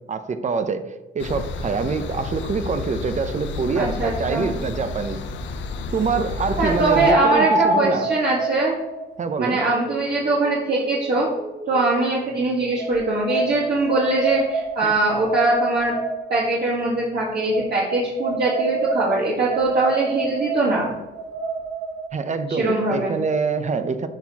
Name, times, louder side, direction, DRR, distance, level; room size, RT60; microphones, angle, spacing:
voice 1, 0.1-5.2 5.9-8.1 9.2-9.6 14.8-15.0 22.1-24.1, right 5 dB, 35° right, 10 dB, 0.7 m, -25 dB
sound 1, 1.2-7.1, left 4 dB, 70° left, 0.7 m, -31 dB
voice 2, 3.8-4.5 6.6-8.8 9.4-11.3 11.7-15.9 16.3-20.9 22.6-23.2, right 2 dB, 55° right, -5 dB, 1.6 m, -22 dB
sound 2, 4.3-4.4 6.9-12.0 12.8-16.5 17.5-22.1, right 3 dB, 90° right, 1.2 m, -28 dB
11.5 x 4.5 x 2.9 m, 1.1 s
cardioid pair, 90°, 20 cm